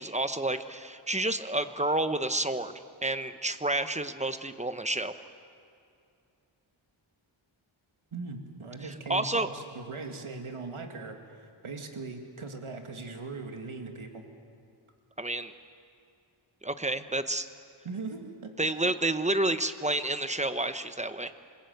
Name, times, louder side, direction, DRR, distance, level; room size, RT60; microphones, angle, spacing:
voice 1, 0.0-2.7 3.0-5.1 8.8-9.5 15.2-15.5 16.6-17.5 18.6-21.3, right 2 dB, 15° right, 10 dB, 1.0 m, -30 dB
voice 2, 8.1-14.2 17.8-18.5 18.8-18.9, right 3 dB, 85° right, 4 dB, 2.3 m, -40 dB
27.0 x 21.0 x 8.1 m, 2.5 s
wide cardioid pair, 80°, 48 cm